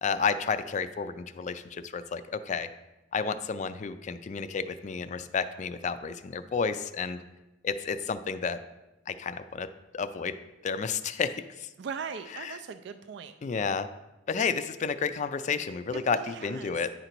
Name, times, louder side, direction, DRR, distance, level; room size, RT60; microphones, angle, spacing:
voice 1, 0.0-2.7 3.1-7.2 7.6-8.6 9.1-9.7 9.9-10.3 10.6-11.7 12.3-12.6 13.4-13.9 14.3-16.9, left 5 dB, 40° left, 11 dB, 0.3 m, -31 dB
voice 2, 11.8-13.3 15.9-16.8, right 6 dB, 60° right, 10 dB, 0.3 m, -39 dB
10.0 x 3.9 x 4.5 m, 1.0 s
head